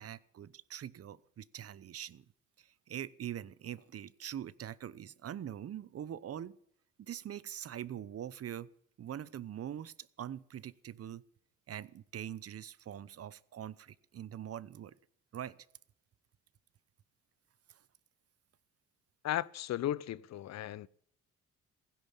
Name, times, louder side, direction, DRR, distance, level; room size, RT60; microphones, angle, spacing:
voice 1, 0.0-2.3 2.6-6.6 7.0-8.7 9.0-11.2 11.7-15.0 15.3-15.6 17.7-17.8, right 10 dB, 50° right, 0.9 m, -43 dB
voice 2, 19.2-20.9, left 12 dB, 60° left, 0.7 m, -35 dB
16.0 x 10.5 x 7.3 m
cardioid pair, 90°, 30 cm